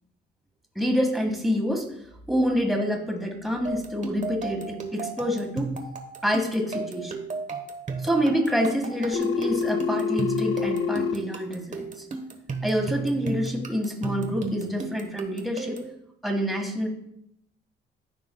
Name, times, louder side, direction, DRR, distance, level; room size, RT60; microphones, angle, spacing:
voice 1, 0.8-1.9 2.3-5.7 6.2-7.2 8.0-12.0 12.6-15.8 16.2-16.9, equal, ahead, 1 dB, 1.7 m, -27 dB
sound 1, 3.6-16.0, right 4 dB, 40° right, 1.1 m, -35 dB
Telephone, 9.1-11.1, left 6 dB, 80° left, 0.7 m, -26 dB
13.5 x 4.7 x 2.3 m, 0.77 s
cardioid pair, 90°, 20 cm